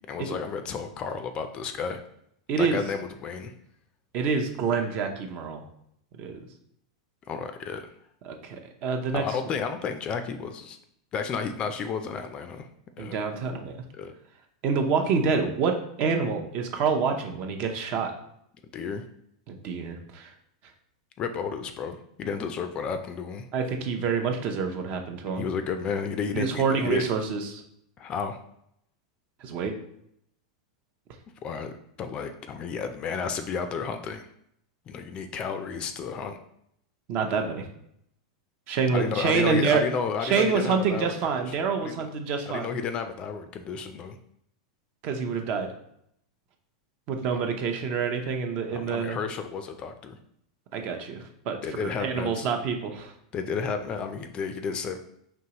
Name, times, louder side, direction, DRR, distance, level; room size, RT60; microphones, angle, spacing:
voice 1, 0.1-2.0 2.6-3.5 7.3-7.9 9.1-10.8 11.1-12.7 13.0-13.2 14.0-14.1 18.7-19.0 21.2-23.5 25.4-27.1 28.0-28.4 31.4-31.7 32.0-34.3 34.9-36.4 38.9-41.5 41.8-42.1 42.5-44.2 47.3-47.4 48.7-50.2 51.6-52.5 53.3-55.0, left 6 dB, 30° left, 8 dB, 0.4 m, -32 dB
voice 2, 2.5-2.8 4.1-5.6 6.2-6.4 8.2-9.2 13.0-13.8 14.6-18.1 19.5-20.3 23.5-25.5 26.3-27.6 29.4-29.7 37.1-37.7 38.7-39.8 40.2-42.7 45.0-45.7 47.1-49.2 50.7-53.1, right 5 dB, 45° right, 4 dB, 0.6 m, -27 dB
4.5 x 3.0 x 2.9 m, 0.73 s
supercardioid pair, 130°, 3 cm